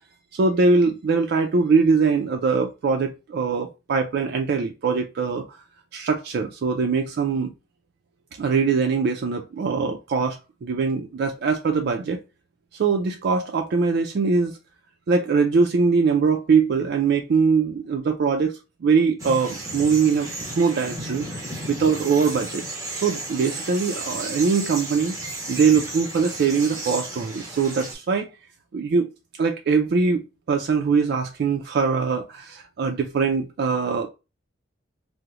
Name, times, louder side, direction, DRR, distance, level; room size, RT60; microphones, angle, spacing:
voice 1, 0.3-5.6 5.9-7.5 8.3-12.2 12.7-14.6 15.1-20.3 20.6-21.3 21.7-22.6 23.0-25.2 25.5-28.3 28.7-29.1 29.4-30.2 30.5-34.1, right 5 dB, 60° right, 0.4 m, -22 dB
sound 1, 19.2-27.9, right 2 dB, 15° right, 0.9 m, -34 dB
2.9 x 2.0 x 3.5 m
head